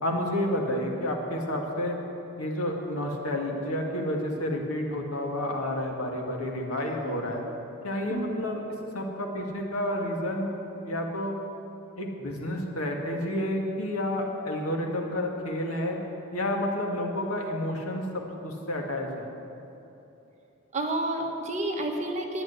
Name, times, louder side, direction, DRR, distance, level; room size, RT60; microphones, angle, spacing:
voice 1, 0.0-2.0 2.4-7.4 7.8-8.6 8.9-10.5 10.8-11.4 12.0-16.0 16.3-19.3, left 1 dB, 90° left, 1 dB, 2.0 m, -30 dB
voice 2, 8.1-8.4 20.7-22.4, right 1 dB, 35° right, 1 dB, 1.4 m, -30 dB
11.0 x 10.5 x 9.5 m, 2.9 s
head